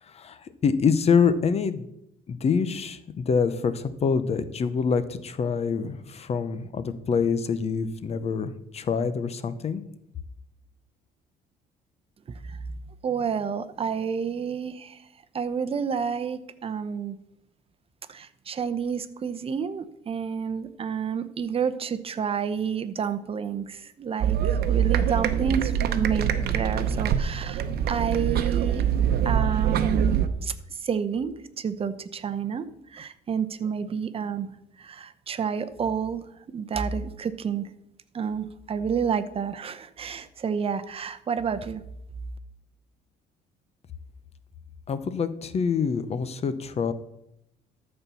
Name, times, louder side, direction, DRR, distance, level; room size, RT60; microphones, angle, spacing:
voice 1, 0.1-1.8 2.3-9.8 44.9-46.9, left 6 dB, 40° left, 13 dB, 0.8 m, -26 dB
voice 2, 13.0-15.0 15.3-17.2 18.1-24.4 24.6-27.6 27.9-28.9 29.2-30.5 30.8-32.6 32.9-34.5 34.8-36.2 36.5-37.7 38.1-41.8, right 6 dB, 35° right, 12 dB, 0.8 m, -29 dB
sound 1, 24.2-30.3, right 9 dB, 65° right, 0.9 m, -24 dB
13.0 x 4.4 x 6.9 m, 0.81 s
cardioid pair, 110°, 17 cm